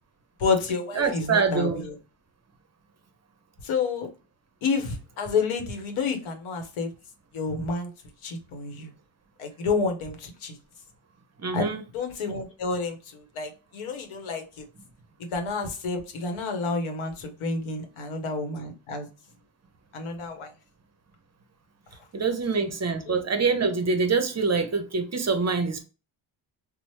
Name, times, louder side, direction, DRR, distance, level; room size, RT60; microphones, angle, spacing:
voice 1, 0.4-2.0 3.6-4.1 4.6-6.9 7.3-7.9 8.2-8.9 9.4-10.6 11.5-11.7 11.9-14.7 15.3-19.1 19.9-20.5 23.1-23.2, left 4 dB, 80° left, 0.9 m, -29 dB
voice 2, 1.0-1.8 11.4-11.8 22.1-25.8, right 4 dB, 35° right, 0.6 m, -25 dB
3.0 x 2.0 x 3.0 m
cardioid pair, 75°, 48 cm